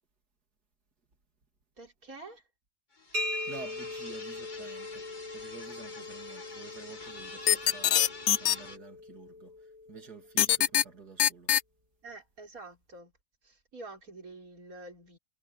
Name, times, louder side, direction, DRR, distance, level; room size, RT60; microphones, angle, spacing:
voice 1, 1.8-2.4 12.0-13.1 13.4-15.2, right 2 dB, 65° right, 5.0 m, -47 dB
sound 1, 2.9-8.8, left 3 dB, 30° left, 1.7 m, -47 dB
sound 2, 3.1-10.7, left 2 dB, 35° right, 2.7 m, -41 dB
voice 2, 3.5-11.5, right 5 dB, 80° right, 3.4 m, -49 dB
sound 3, 7.5-8.6 10.4-10.8 11.2-11.6, left 11 dB, 60° left, 0.7 m, -22 dB
omnidirectional pair, 1.6 m